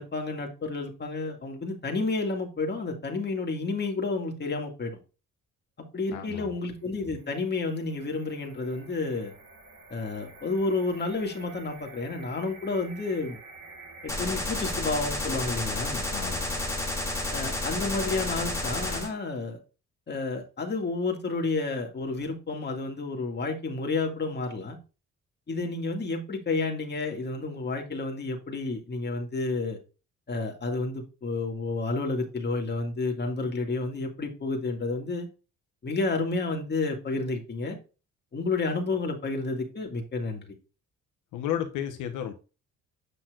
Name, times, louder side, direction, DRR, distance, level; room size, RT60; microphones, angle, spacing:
voice 1, 0.0-5.0 5.9-9.3 9.9-13.4 14.0-16.0 17.3-19.6 20.1-24.8 25.5-29.8 30.3-35.3 35.8-37.8 38.3-40.5, left 3 dB, 35° left, 2.1 m, -30 dB
voice 2, 6.1-6.4 16.1-16.6 41.3-42.3, left 10 dB, 90° left, 1.1 m, -33 dB
sound 1, 6.7-14.1, right 3 dB, 65° right, 4.2 m, -50 dB
Gunshot gunfire, 14.1-19.1, left 1 dB, 10° left, 3.3 m, -31 dB
8.3 x 5.9 x 2.5 m
cardioid pair, 90°, 30 cm